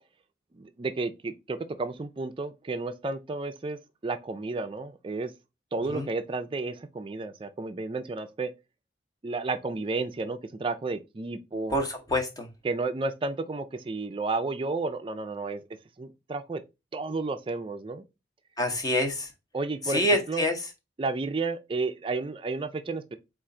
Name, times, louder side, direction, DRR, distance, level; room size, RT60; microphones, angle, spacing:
voice 1, 0.5-5.3 5.7-8.5 9.2-11.8 12.6-15.6 16.0-16.6 16.9-18.0 19.5-20.0 20.3-20.5 21.0-23.2, right 3 dB, 30° right, 0.4 m, -32 dB
voice 2, 11.7-12.5 18.6-19.3 19.9-20.6, left 1 dB, 20° left, 0.8 m, -26 dB
4.3 x 2.5 x 3.6 m
head